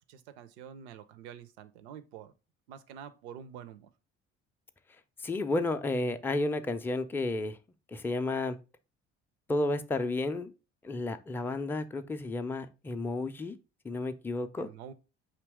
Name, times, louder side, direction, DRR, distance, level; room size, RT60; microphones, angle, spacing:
voice 1, 0.1-2.3 2.7-3.9 14.6-14.9, right 8 dB, 80° right, 0.5 m, -47 dB
voice 2, 5.2-7.6 7.9-8.6 9.5-10.5 10.8-13.6 13.8-14.7, left 2 dB, 5° left, 0.4 m, -32 dB
5.1 x 2.8 x 3.4 m
hypercardioid pair, 55°, 33 cm